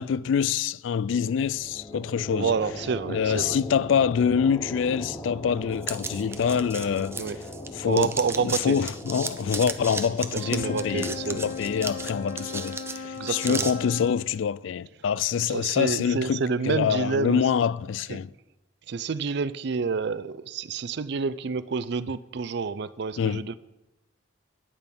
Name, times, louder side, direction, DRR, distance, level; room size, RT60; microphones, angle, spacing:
voice 1, 0.0-2.5 3.1-7.2 7.7-8.1 8.4-18.3 23.2-23.5, left 7 dB, 70° left, 0.3 m, -26 dB
sound 1, 1.3-14.7, left 1 dB, 20° left, 1.8 m, -40 dB
voice 2, 2.3-3.6 7.1-7.4 7.8-8.9 10.3-11.5 13.2-13.7 15.5-17.4 18.1-18.2 18.9-23.6, right 5 dB, 55° right, 0.4 m, -29 dB
sound 2, 5.8-7.7 7.9-13.7, right 4 dB, 15° right, 0.6 m, -35 dB
Wind instrument woodwind instrument, 10.2-14.2, left 5 dB, 45° left, 1.6 m, -37 dB
9.9 x 8.9 x 5.3 m
head